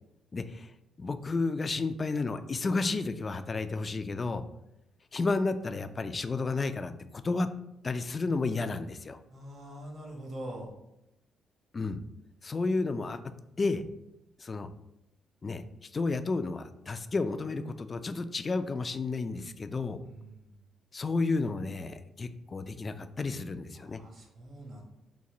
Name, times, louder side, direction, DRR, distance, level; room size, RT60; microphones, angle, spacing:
voice 1, 0.3-0.7 1.0-4.4 5.1-7.5 7.8-9.2 11.7-12.0 12.4-13.2 13.6-13.8 14.4-14.7 15.4-20.0 20.9-24.0, left 3 dB, 30° left, 10 dB, 0.3 m, -32 dB
voice 2, 9.3-10.7 20.0-20.5 23.8-24.8, right 1 dB, 50° right, 0 dB, 1.3 m, -44 dB
4.2 x 2.5 x 3.7 m, 0.85 s
cardioid pair, 90°, 0 cm